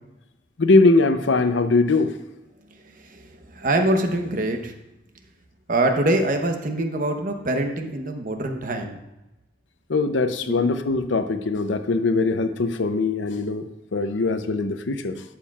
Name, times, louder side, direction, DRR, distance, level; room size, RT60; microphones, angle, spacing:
voice 1, 0.6-2.1 9.9-15.2, left 3 dB, 85° left, 9 dB, 0.6 m, -21 dB
voice 2, 2.7-4.7 5.7-9.0 10.5-10.6, right 1 dB, 50° right, 5 dB, 0.9 m, -24 dB
11.5 x 7.2 x 2.4 m, 0.99 s
head